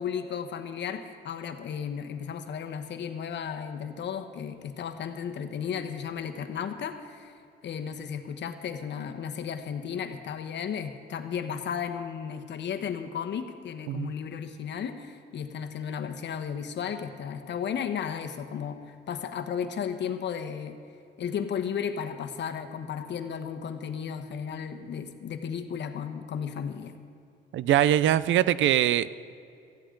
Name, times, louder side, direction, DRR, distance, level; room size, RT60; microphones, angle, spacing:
voice 1, 0.0-7.3 7.6-20.8 21.2-26.9, left 7 dB, 65° left, 7 dB, 1.2 m, -34 dB
voice 2, 27.5-29.2, right 11 dB, 75° right, 17 dB, 0.5 m, -22 dB
18.5 x 14.0 x 3.9 m, 2.5 s
cardioid pair, 90°, 20 cm